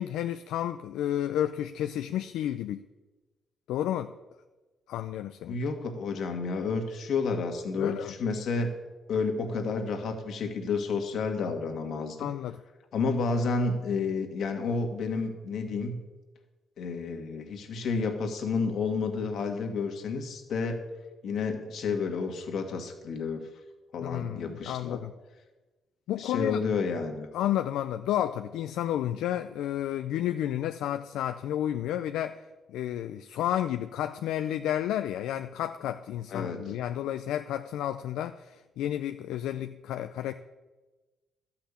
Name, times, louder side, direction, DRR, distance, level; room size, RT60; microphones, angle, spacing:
voice 1, 0.0-2.8 3.7-4.1 4.9-5.6 7.8-8.1 12.2-12.6 24.0-25.1 26.1-26.6 27.3-32.4 32.7-40.3, left 11 dB, 85° left, 9 dB, 0.4 m, -31 dB
voice 2, 5.5-8.7 9.1-12.3 12.9-16.0 16.8-20.8 21.2-23.5 23.9-25.0 26.2-27.3 36.3-36.6, left 4 dB, 65° left, 4 dB, 1.9 m, -30 dB
12.5 x 5.8 x 8.5 m, 1.2 s
cardioid pair, 90°, 0 cm